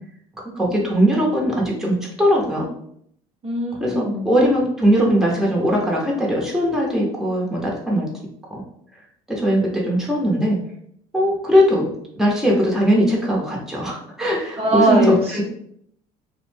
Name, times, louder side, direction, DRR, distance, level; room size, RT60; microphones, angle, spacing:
voice 1, 0.5-2.7 3.8-8.1 8.5-8.6 9.3-10.6 11.1-11.9 12.2-15.4, equal, ahead, -3 dB, 0.8 m, -20 dB
voice 2, 3.4-4.3 14.6-15.4, right 1 dB, 35° right, -2 dB, 0.8 m, -20 dB
2.5 x 2.1 x 3.2 m, 0.69 s
supercardioid pair, 75°, 18 cm